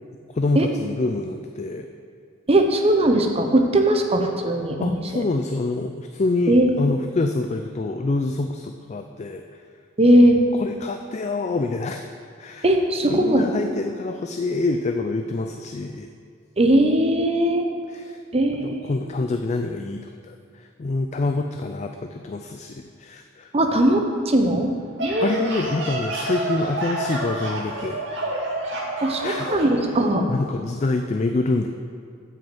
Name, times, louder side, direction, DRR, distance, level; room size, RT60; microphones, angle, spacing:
voice 1, 0.3-1.9 4.8-9.4 10.5-12.0 12.4-12.7 13.1-16.1 17.9-18.2 18.6-23.5 25.2-28.4 29.2-29.5 30.3-31.7, left 3 dB, 35° left, 6 dB, 0.4 m, -26 dB
voice 2, 2.5-5.2 6.5-6.8 10.0-10.4 12.6-13.4 16.6-17.6 18.3-19.0 23.5-24.7 25.0-25.5 29.0-30.3, right 1 dB, 30° right, 4 dB, 0.9 m, -19 dB
sound 1, 24.7-29.7, right 2 dB, 60° right, 2.1 m, -29 dB
8.4 x 6.4 x 7.8 m, 2.2 s
head